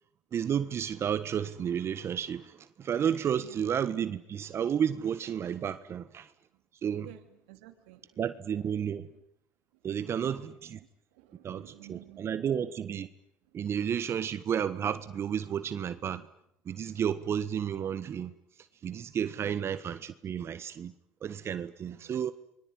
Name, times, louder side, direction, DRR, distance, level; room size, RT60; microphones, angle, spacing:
voice 1, 0.3-6.3 6.8-7.1 8.2-9.1 9.8-10.8 11.4-13.1 13.5-16.3 16.6-18.3 18.8-20.9 21.2-22.3, right 8 dB, 45° right, 1.4 m, -32 dB
voice 2, 7.0-8.2 8.7-8.9 9.8-10.3 11.1-12.5 19.4-19.5 22.0-22.2, right 16 dB, 90° right, 2.7 m, -53 dB
27.0 x 22.5 x 9.6 m
supercardioid pair, 80°, 6 cm